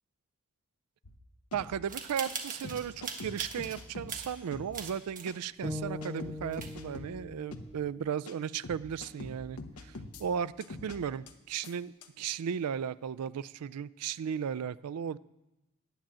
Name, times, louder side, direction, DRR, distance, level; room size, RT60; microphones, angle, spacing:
sound 1, 1.0-1.2 1.5-1.7 2.3-2.4 2.6-4.2 4.5-4.7 5.3-5.4 5.6-7.1 7.5-7.7 8.3-8.4 8.6-10.2 10.6-11.0 11.3-11.4 11.6-11.7 12.0-12.1, left 2 dB, 85° left, 1.0 m, -44 dB
voice 1, 1.5-9.9 10.2-15.2, right 8 dB, 80° right, 15 dB, 0.4 m, -35 dB
sound 2, 1.9-3.8 4.1-5.3 5.7-5.8 6.2-6.3 6.5-7.0, right 6 dB, 35° right, 1.3 m, -41 dB
sound 3, 5.6-9.8, left 1 dB, 20° right, 1.1 m, -43 dB
10.0 x 8.9 x 7.4 m, 0.98 s
head